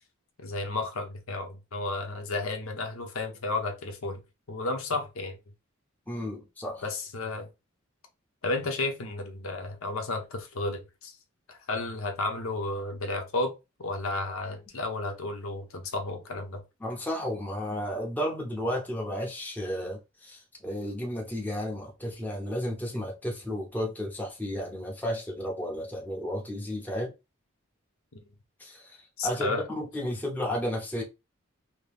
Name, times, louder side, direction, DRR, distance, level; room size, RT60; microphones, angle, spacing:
voice 1, 0.4-4.2 4.5-5.4 6.8-7.5 8.4-11.1 11.5-13.5 13.8-16.6 28.1-28.2 29.2-29.7, left 2 dB, 80° left, 0.8 m, -32 dB
voice 2, 6.1-6.8 16.8-27.1 28.6-31.0, equal, 10° left, 0.7 m, -33 dB
2.9 x 2.7 x 3.4 m
head